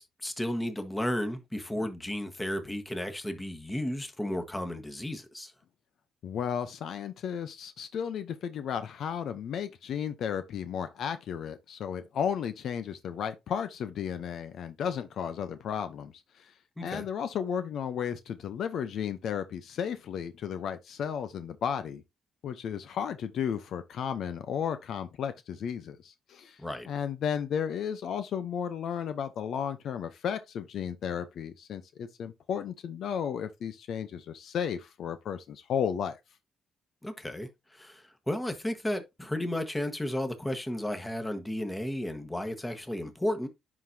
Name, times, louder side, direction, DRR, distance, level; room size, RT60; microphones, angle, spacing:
voice 1, 0.0-5.5 16.8-17.0 26.6-26.9 37.0-43.5, left 1 dB, 10° left, 1.4 m, -33 dB
voice 2, 6.2-16.5 16.8-22.0 22.4-26.6 26.9-36.2, left 8 dB, 70° left, 0.7 m, -34 dB
11.0 x 3.9 x 2.7 m
cardioid pair, 90°, 0 cm